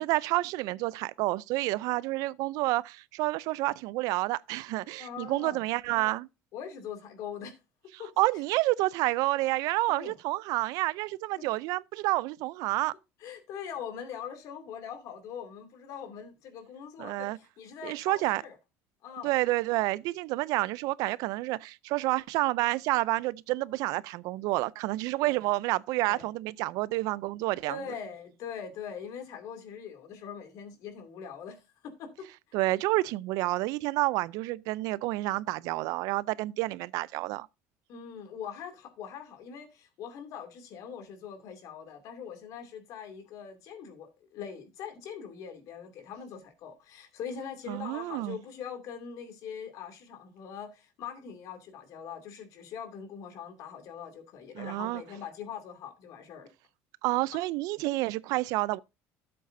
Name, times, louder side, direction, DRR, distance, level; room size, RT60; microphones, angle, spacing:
voice 1, 0.0-6.3 8.2-12.9 17.0-17.4 17.8-18.4 19.2-27.8 32.5-37.5 47.7-48.4 54.5-55.0 57.0-58.8, right 19 dB, 75° right, 0.4 m, -29 dB
voice 2, 5.0-5.6 6.5-7.5 8.0-8.1 9.9-10.1 13.2-18.5 19.0-19.4 25.2-25.4 26.1-26.3 27.7-31.6 32.0-32.3 37.9-56.5 57.3-57.4, left 7 dB, 65° left, 2.6 m, -42 dB
13.0 x 7.7 x 2.6 m
cardioid pair, 110°, 6 cm